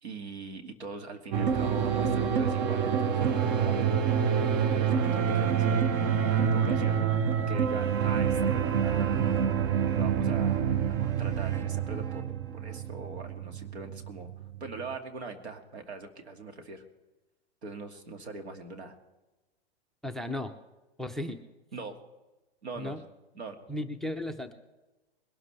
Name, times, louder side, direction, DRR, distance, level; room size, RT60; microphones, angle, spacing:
voice 1, 0.0-4.3 4.7-7.0 7.5-9.2 9.9-12.2 12.5-14.3 14.6-16.8 17.6-19.0 21.7-22.0 22.6-23.0 23.3-23.6, right 3 dB, 85° right, 5 dB, 2.2 m, -42 dB
sound 1, 1.3-15.0, right 7 dB, 40° right, 0.9 m, -27 dB
voice 2, 20.0-20.5 21.0-21.4 22.8-23.0 23.7-24.5, left 1 dB, ahead, 9 dB, 0.5 m, -35 dB
21.5 x 12.5 x 3.3 m, 1.1 s
hypercardioid pair, 125°, 32 cm